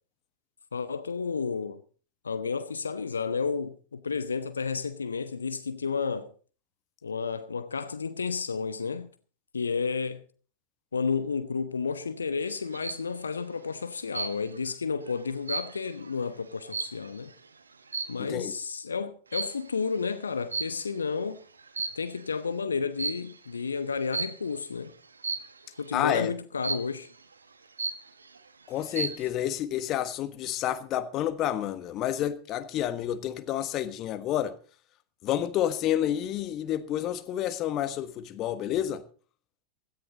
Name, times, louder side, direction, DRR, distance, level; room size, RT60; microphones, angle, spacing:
voice 1, 0.7-1.8 2.2-6.3 7.0-9.1 9.5-10.2 10.9-17.3 18.1-21.4 22.0-24.9 25.8-27.1, left 5 dB, 75° left, 1.0 m, -31 dB
sound 1, 12.5-13.1 14.1-14.7 15.1-17.3 17.9-18.3 19.3-19.7 20.5-21.1 21.6-22.3 23.0-23.4 24.1-24.5 25.2-25.7 26.6-27.1 27.5-27.6 27.8-28.4 28.8-29.3, right 4 dB, 75° right, 1.4 m, -34 dB
voice 2, 18.2-18.5 25.9-26.3 28.7-34.5 35.2-39.0, left 11 dB, 35° left, 1.4 m, -29 dB
17.0 x 13.5 x 4.0 m
figure-of-eight pair, 90°, 0 cm